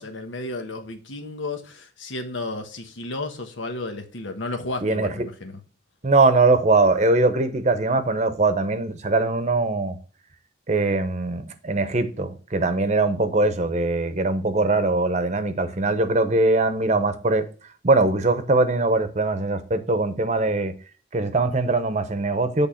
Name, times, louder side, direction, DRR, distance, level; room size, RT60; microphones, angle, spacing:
voice 1, 0.0-5.6, left 2 dB, 85° left, 1.2 m, -33 dB
voice 2, 6.0-10.0 10.7-17.4 17.8-20.7 21.1-22.7, right 3 dB, 35° right, 0.8 m, -21 dB
8.5 x 3.5 x 5.6 m
head